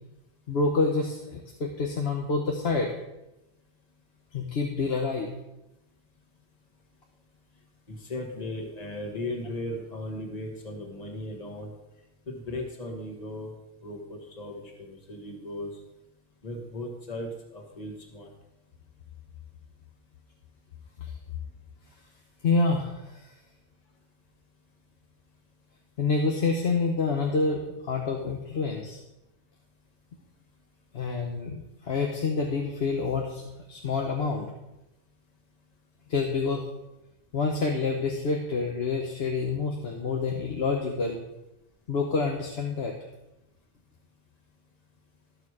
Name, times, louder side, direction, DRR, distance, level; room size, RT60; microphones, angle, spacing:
voice 1, 0.5-2.9 4.3-5.3 21.0-21.1 22.4-23.3 26.0-29.0 30.9-33.4 33.7-34.5 36.1-36.7 37.3-41.2 41.9-42.9, left 4 dB, 65° left, 2 dB, 1.2 m, -27 dB
voice 2, 7.9-11.7 12.3-13.5 13.8-15.7 16.4-18.3, left 1 dB, 35° left, 1 dB, 1.7 m, -37 dB
13.5 x 6.6 x 4.8 m, 0.96 s
omnidirectional pair, 1.1 m